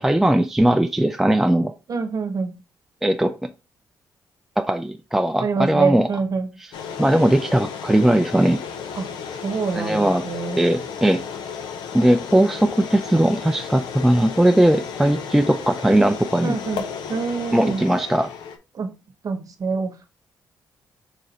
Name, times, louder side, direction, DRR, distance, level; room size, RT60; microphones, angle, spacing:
voice 1, 0.0-1.7 3.0-3.3 4.6-6.1 6.6-6.7 7.0-8.6 9.7-10.3 10.6-11.2 11.9-16.6 17.5-18.3, right 1 dB, 5° right, 0.4 m, -19 dB
voice 2, 1.9-2.6 5.4-6.5 9.0-9.2 9.4-10.6 16.4-16.8 17.1-17.9 18.7-18.9 19.2-20.1, right 4 dB, 50° right, 1.0 m, -25 dB
sound 1, 6.7-18.6, left 7 dB, 90° left, 0.6 m, -34 dB
4.9 x 2.6 x 4.1 m
cardioid pair, 70°, 8 cm